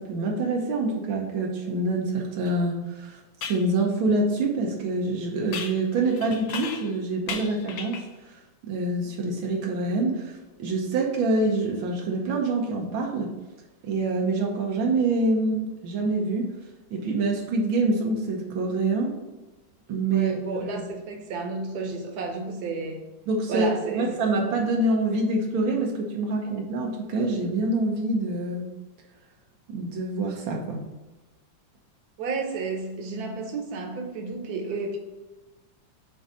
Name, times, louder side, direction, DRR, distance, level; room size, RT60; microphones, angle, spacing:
voice 1, 0.0-8.0 8.3-8.4 8.6-13.3 13.8-16.5 16.9-19.2 19.9-20.7 23.3-28.7 29.7-30.8, right 2 dB, 90° right, 0 dB, 1.7 m, -26 dB
sound 1, 2.5-2.6 3.4-3.7 5.5-7.0 7.3-8.2, left 6 dB, 85° left, 1.5 m, -36 dB
voice 2, 20.1-23.1 23.5-24.2 32.2-35.0, right 3 dB, 60° right, 3 dB, 1.3 m, -32 dB
7.6 x 2.7 x 5.0 m, 1.1 s
omnidirectional pair, 2.1 m